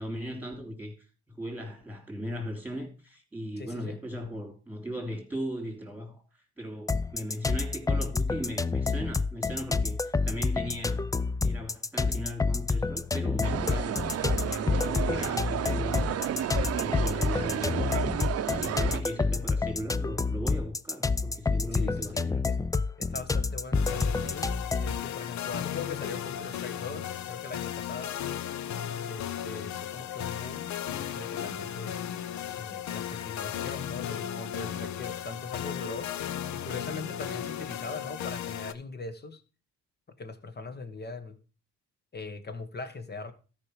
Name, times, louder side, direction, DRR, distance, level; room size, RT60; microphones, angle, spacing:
voice 1, 0.0-11.1 11.4-17.8 18.2-22.4 23.0-23.3, equal, 5° right, 3.2 m, -38 dB
voice 2, 3.6-4.0 21.7-22.6 23.0-28.2 29.1-31.9 32.6-36.1 36.5-39.4 40.2-41.4 42.1-43.3, left 4 dB, 35° left, 1.4 m, -40 dB
sound 1, 6.9-25.0, left 4 dB, 10° left, 0.4 m, -28 dB
sound 2, 13.4-19.0, right 10 dB, 55° right, 0.7 m, -32 dB
sound 3, 23.7-38.7, left 10 dB, 65° left, 0.7 m, -35 dB
13.0 x 5.3 x 4.9 m
cardioid pair, 90°, 30 cm